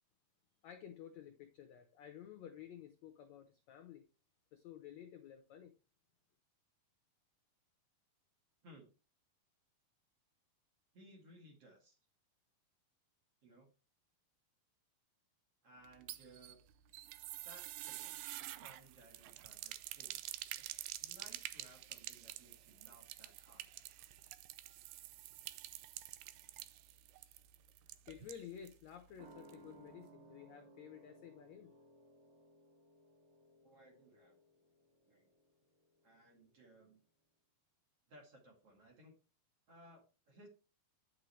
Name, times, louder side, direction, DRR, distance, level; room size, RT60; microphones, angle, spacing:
voice 1, 0.6-4.0 4.5-5.7 28.1-31.7, left 9 dB, 75° left, 1.6 m, -53 dB
voice 2, 10.9-12.0 13.4-13.7 15.6-16.6 17.4-20.2 20.5-23.7 33.6-34.4 35.1-35.3 36.0-37.0 38.1-39.1 39.7-40.5, right 1 dB, 45° right, 3.1 m, -61 dB
sound 1, 15.8-28.8 29.1-29.2 29.5-29.6, right 15 dB, 90° right, 2.6 m, -48 dB
sound 2, 29.2-36.2 36.5-36.6, right 2 dB, 70° right, 3.1 m, -62 dB
10.0 x 6.6 x 3.2 m
omnidirectional pair, 4.3 m